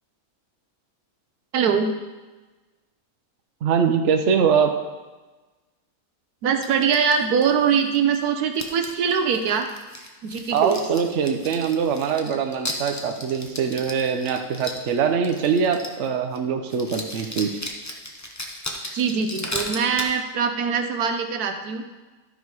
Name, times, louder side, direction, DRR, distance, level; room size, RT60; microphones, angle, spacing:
voice 1, 1.5-1.9 6.4-9.7 10.2-10.8 18.9-21.8, right 6 dB, 80° right, 6 dB, 1.3 m, -22 dB
voice 2, 3.6-4.7 10.5-17.6, right 6 dB, 55° right, 5 dB, 1.0 m, -23 dB
sound 1, 6.6-8.2 8.5-16.1 16.3-16.4 16.7-20.1, left 1 dB, 20° left, 0.5 m, -35 dB
12.5 x 5.5 x 4.7 m, 1.2 s
omnidirectional pair, 1.6 m